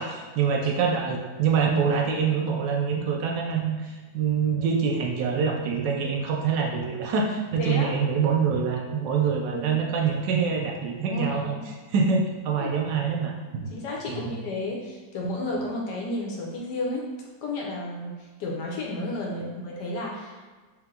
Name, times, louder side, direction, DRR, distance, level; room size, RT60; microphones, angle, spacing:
voice 1, 0.0-11.5 11.9-13.3 13.6-13.7 14.1-14.3 19.4-19.5, right 6 dB, 75° right, 1 dB, 1.1 m, -25 dB
voice 2, 7.6-8.0 9.5-9.8 11.0-11.6 12.6-12.7 13.7-17.0 17.4-20.4, left 2 dB, 70° left, -2 dB, 1.2 m, -32 dB
3.3 x 3.0 x 3.6 m, 1.4 s
omnidirectional pair, 2.0 m